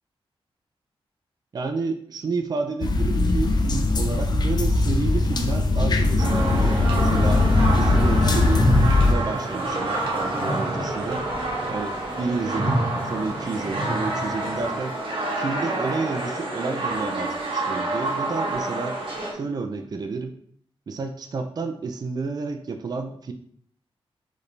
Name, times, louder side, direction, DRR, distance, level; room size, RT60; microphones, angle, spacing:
voice 1, 1.5-7.5 7.8-8.7 9.0-11.3 11.7-15.0 15.4-19.0 19.3-20.4 20.9-23.3, right 4 dB, 45° right, 5 dB, 0.4 m, -30 dB
sound 1, 2.8-9.1, left 2 dB, 45° left, 0.5 m, -20 dB
sound 2, 6.2-19.3, right 2 dB, 60° right, 1.2 m, -28 dB
sound 3, 8.5-14.8, right 1 dB, 25° right, 1.1 m, -30 dB
4.7 x 3.3 x 3.2 m, 0.62 s
wide cardioid pair, 135°, 10 cm